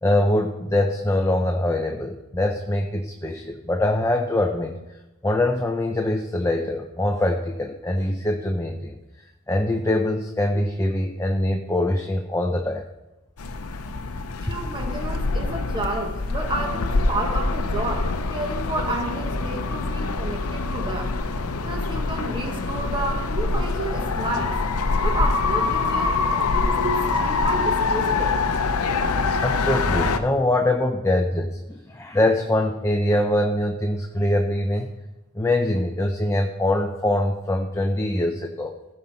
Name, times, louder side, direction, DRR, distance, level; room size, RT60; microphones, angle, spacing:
voice 1, 0.0-4.8 5.2-9.0 9.5-12.8 29.4-34.9 35.4-38.7, left 1 dB, 15° left, 3 dB, 0.6 m, -23 dB
sound 1, 13.4-30.2, left 3 dB, 85° left, 0.7 m, -25 dB
voice 2, 14.4-21.1 21.6-24.5 25.0-28.4, right 2 dB, 25° right, 2 dB, 1.5 m, -30 dB
15.5 x 5.5 x 4.4 m, 1.0 s
head